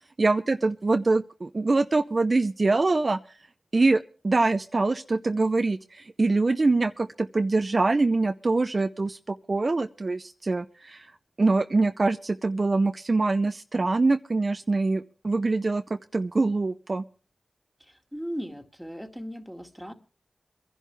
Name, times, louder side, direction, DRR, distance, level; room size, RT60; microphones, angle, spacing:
voice 1, 0.2-3.2 3.7-11.1 11.4-17.0, right 3 dB, 50° right, 9 dB, 0.6 m, -24 dB
voice 2, 17.9-19.9, equal, ahead, 4 dB, 2.1 m, -37 dB
23.5 x 11.0 x 3.4 m, 0.39 s
cardioid pair, 45°, 0 cm